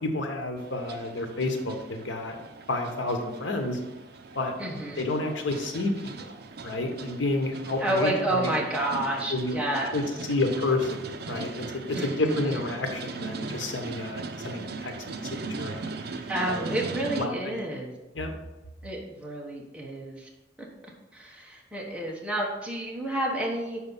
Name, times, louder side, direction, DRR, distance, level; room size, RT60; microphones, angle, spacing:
voice 1, 0.0-2.4 2.7-3.8 4.3-6.3 6.6-8.5 9.3-10.0 10.3-11.0 11.3-15.9 16.4-16.6 16.9-17.6 18.1-18.3, left 2 dB, 85° left, 4 dB, 1.1 m, -30 dB
sound 1, 0.6-17.3, right 4 dB, 60° right, 0.6 m, -39 dB
voice 2, 4.6-5.0 7.8-10.0 11.9-12.6 16.3-18.0 18.8-20.3 21.1-23.8, right 1 dB, 5° right, -2 dB, 1.1 m, -30 dB
6.4 x 4.8 x 5.5 m, 1.0 s
head